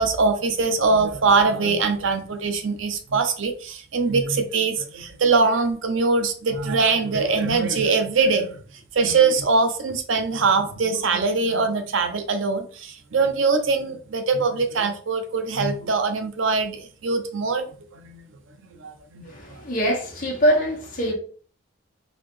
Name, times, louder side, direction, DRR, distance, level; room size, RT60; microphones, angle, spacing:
voice 1, 0.0-8.6 8.9-17.7 17.9-18.2 18.8-19.3, right 4 dB, 75° right, 0.6 m, -22 dB
voice 2, 19.3-21.1, equal, 45° left, 1.3 m, -23 dB
4.0 x 2.7 x 3.1 m
head